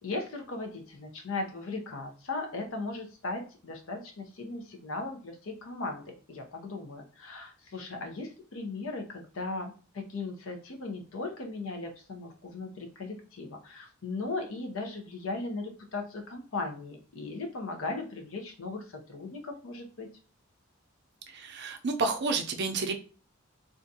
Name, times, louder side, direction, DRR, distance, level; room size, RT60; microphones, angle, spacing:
voice 1, 0.0-20.1, left 3 dB, 70° left, 4 dB, 0.6 m, -37 dB
voice 2, 21.3-22.9, right 3 dB, 55° right, 5 dB, 0.5 m, -30 dB
2.5 x 2.3 x 2.6 m, 0.38 s
head